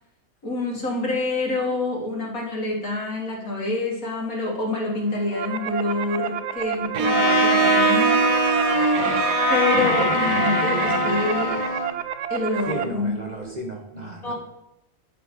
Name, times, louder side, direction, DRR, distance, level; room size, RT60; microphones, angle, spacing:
voice 1, 0.4-9.0 9.5-11.6 12.3-13.1 14.2-14.3, left 2 dB, 60° left, -2 dB, 3.0 m, -27 dB
sound 1, 5.0-12.8, right 10 dB, 65° right, 0.7 m, -30 dB
Bowed string instrument, 6.9-11.8, right 8 dB, 85° right, 1.4 m, -23 dB
Trumpet, 7.0-12.0, left 5 dB, 40° left, 0.5 m, -24 dB
voice 2, 12.7-14.3, right 1 dB, 30° right, 1 dB, 1.4 m, -33 dB
10.5 x 6.7 x 5.4 m, 0.84 s
omnidirectional pair, 1.7 m